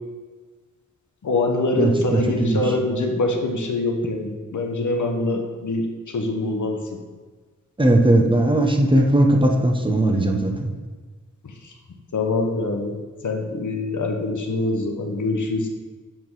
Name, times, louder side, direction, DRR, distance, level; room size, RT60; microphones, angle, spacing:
voice 1, 1.2-5.8 6.1-6.8 12.1-13.0 13.2-15.7, left 2 dB, 70° left, 3 dB, 0.9 m, -24 dB
voice 2, 1.8-2.6 7.8-10.7, right 1 dB, 15° right, 2 dB, 0.8 m, -18 dB
7.5 x 3.7 x 4.7 m, 1.4 s
wide cardioid pair, 80°, 31 cm